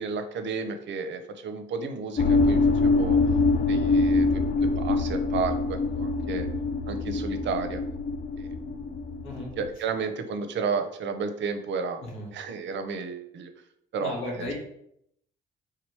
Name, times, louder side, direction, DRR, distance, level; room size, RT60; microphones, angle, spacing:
voice 1, 0.0-3.2 3.7-6.5 6.9-7.8 8.4-8.9 9.6-12.0 12.3-13.5 13.9-14.5, right 5 dB, 70° right, 7 dB, 0.6 m, -32 dB
sound 1, 2.2-9.7, left 3 dB, 40° left, 0.5 m, -24 dB
voice 2, 12.0-12.3 14.0-14.5, left 2 dB, 85° left, -2 dB, 1.5 m, -34 dB
3.5 x 2.9 x 4.7 m, 0.73 s
cardioid pair, 90°, 20 cm